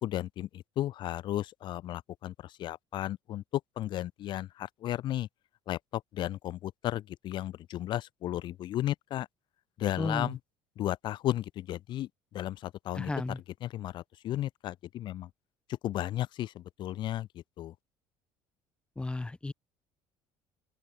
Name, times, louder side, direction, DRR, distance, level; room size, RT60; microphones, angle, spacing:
voice 1, 0.0-3.4 3.8-5.3 5.7-9.3 9.8-10.4 10.8-13.1 13.6-15.3 15.8-17.3 17.6-17.7, left 13 dB, 60° left, 1.4 m, -34 dB
voice 2, 10.0-10.3 12.9-13.4 19.0-19.5, left 2 dB, 10° left, 0.8 m, -33 dB
open air
cardioid pair, 110°, 9 cm